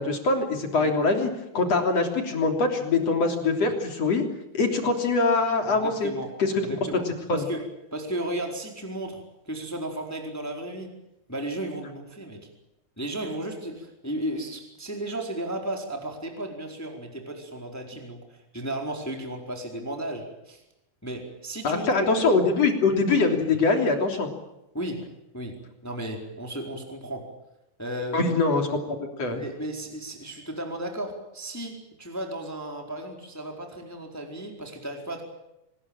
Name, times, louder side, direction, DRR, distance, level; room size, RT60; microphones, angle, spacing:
voice 1, 0.0-4.2 4.5-6.1 6.4-6.6 7.3-7.4 21.6-24.3 28.1-29.4, left 3 dB, 40° left, 4 dB, 4.0 m, -23 dB
voice 2, 5.7-11.0 11.3-12.5 13.0-20.6 21.0-22.5 24.7-27.3 27.8-28.3 29.3-35.2, right 1 dB, 5° left, 2 dB, 3.7 m, -34 dB
26.0 x 20.5 x 8.9 m, 0.89 s
omnidirectional pair, 5.0 m